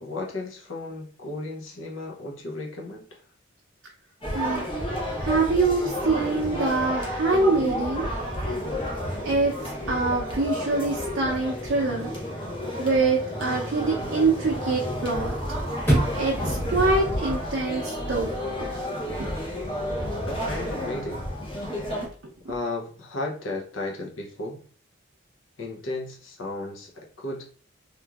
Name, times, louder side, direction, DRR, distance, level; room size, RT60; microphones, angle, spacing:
voice 1, 0.0-3.0 20.2-21.3 22.5-24.6 25.6-27.4, left 2 dB, 75° left, 1 dB, 0.7 m, -34 dB
sound 1, 4.2-22.1, equal, 25° left, 0.8 m, -31 dB
voice 2, 4.3-4.7 5.2-8.1 9.2-9.5 9.9-12.1 12.8-15.3 16.1-18.3 19.2-19.3 22.2-22.3, right 3 dB, 65° right, -2 dB, 0.5 m, -24 dB
Chirp tweet / Car / Slam, 8.0-18.0, right 1 dB, 10° left, 1.1 m, -34 dB
2.9 x 2.5 x 2.3 m, 0.43 s
head